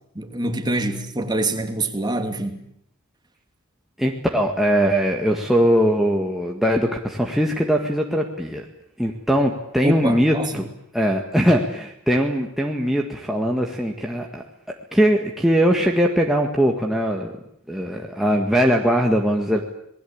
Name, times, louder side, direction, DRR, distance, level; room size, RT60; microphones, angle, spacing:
voice 1, 0.1-2.6 9.8-10.6, right 1 dB, 20° right, 5 dB, 2.7 m, -25 dB
voice 2, 4.0-8.7 9.0-10.7 10.9-14.4 14.9-17.3 17.7-19.6, equal, ahead, 0 dB, 1.8 m, -21 dB
27.5 x 19.5 x 8.7 m, 0.75 s
head